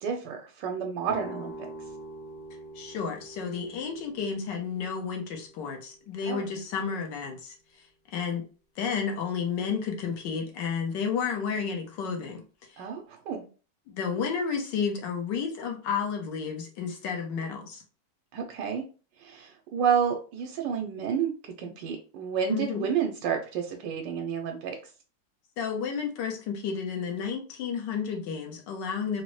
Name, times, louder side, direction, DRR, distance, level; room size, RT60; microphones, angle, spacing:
voice 1, 0.0-1.5 6.2-6.6 12.8-13.4 18.3-18.8 19.2-24.8, right 7 dB, 85° right, 3 dB, 1.2 m, -30 dB
sound 1, 1.1-6.8, right 1 dB, 65° left, 1.3 m, -45 dB
voice 2, 2.7-7.5 8.1-8.4 8.8-12.4 12.7-12.8 13.9-17.8 22.5-22.9 25.6-29.2, left 6 dB, 90° left, 3 dB, 1.5 m, -31 dB
4.0 x 2.0 x 3.1 m, 0.36 s
omnidirectional pair, 1.9 m